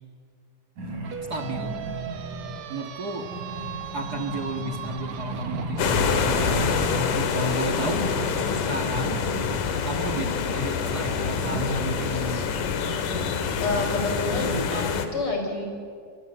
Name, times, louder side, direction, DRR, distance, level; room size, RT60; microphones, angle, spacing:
sound 1, 0.8-2.7 3.1-7.2 7.6-12.1 12.5-14.7, right 1 dB, 80° right, 6.7 m, -36 dB
sound 2, 1.0-7.3, right 9 dB, 60° right, 1.6 m, -37 dB
voice 1, 1.3-1.8 2.7-3.3 3.9-8.1 8.5-9.2 9.8-12.6, right 2 dB, 35° right, 3 dB, 2.1 m, -33 dB
sound 3, 5.8-15.1, left 6 dB, 85° left, 3.2 m, -26 dB
voice 2, 10.1-10.6 13.6-15.7, left 2 dB, 45° left, 3 dB, 5.5 m, -29 dB
29.0 x 24.0 x 8.2 m, 2.2 s
omnidirectional pair, 3.5 m